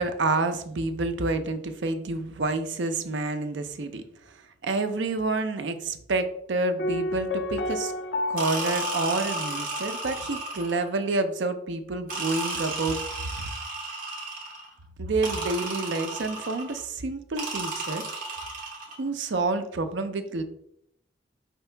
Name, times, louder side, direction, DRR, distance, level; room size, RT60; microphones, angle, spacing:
voice 1, 0.0-4.4 4.6-7.9 8.3-13.0 13.4-13.5 15.0-18.0 19.0-20.4, right 3 dB, 80° right, 8 dB, 0.5 m, -28 dB
Piano, 6.8-10.6 10.8-10.9, left 2 dB, 70° left, 0.4 m, -32 dB
sound 1, 8.4-10.9 12.1-14.7 15.2-16.8 17.4-19.0, right 3 dB, 45° right, 1.1 m, -33 dB
5.2 x 2.8 x 3.3 m, 0.72 s
head